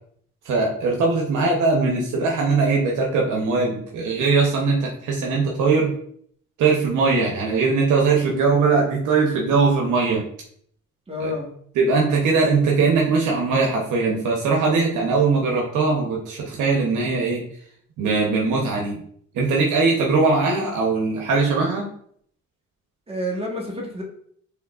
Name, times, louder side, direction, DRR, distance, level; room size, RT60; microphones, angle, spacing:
voice 1, 0.4-5.9 6.6-10.2 11.2-11.3 11.8-17.4 18.0-19.0 19.3-21.8, right 4 dB, 80° right, -1 dB, 0.9 m, -20 dB
voice 2, 11.1-11.5 23.1-24.0, left 1 dB, 20° right, -1 dB, 1.4 m, -28 dB
5.6 x 3.3 x 2.4 m, 0.64 s
cardioid pair, 90°, 30 cm